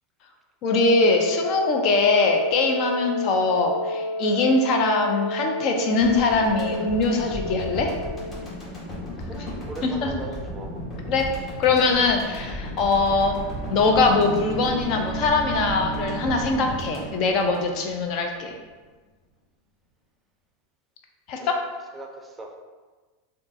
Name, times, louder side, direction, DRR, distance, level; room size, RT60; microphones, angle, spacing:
voice 1, 0.6-7.9 10.0-10.1 11.1-11.3 11.6-13.4 13.7-18.5 21.3-21.6, left 3 dB, 50° left, 3 dB, 0.4 m, -22 dB
Wind instrument woodwind instrument, 0.6-8.5, left 1 dB, 85° right, 0.4 m, -30 dB
sound 1, 6.0-18.2 18.5-18.6, left 1 dB, 30° left, 1.3 m, -35 dB
voice 2, 9.2-10.7 21.4-21.6 21.9-22.5, right 2 dB, 15° right, 1 dB, 0.5 m, -39 dB
Bowed string instrument, 12.7-17.4, right 4 dB, 70° left, 1.3 m, -35 dB
3.6 x 2.3 x 2.6 m, 1.3 s
hypercardioid pair, 95°, 0 cm